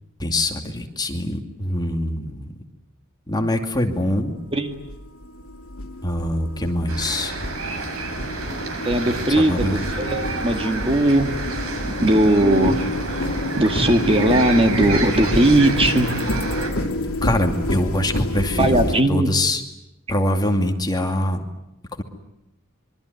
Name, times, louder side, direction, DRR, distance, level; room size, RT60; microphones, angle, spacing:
voice 1, 0.2-2.5 3.3-4.4 6.0-7.3 9.4-9.8 17.2-19.6 20.1-21.4 22.0-22.1, left 1 dB, 20° left, 4 dB, 2.5 m, -23 dB
sound 1, 3.9-4.0 4.7-19.0, left 1 dB, 75° left, 2.6 m, -28 dB
sound 2, 6.9-16.7, right 3 dB, 80° right, 5.8 m, -29 dB
voice 2, 8.8-11.3 11.8-13.0 13.6-16.1 18.6-19.3, right 1 dB, 25° right, 6 dB, 2.0 m, -19 dB
26.0 x 23.5 x 9.6 m, 0.88 s
head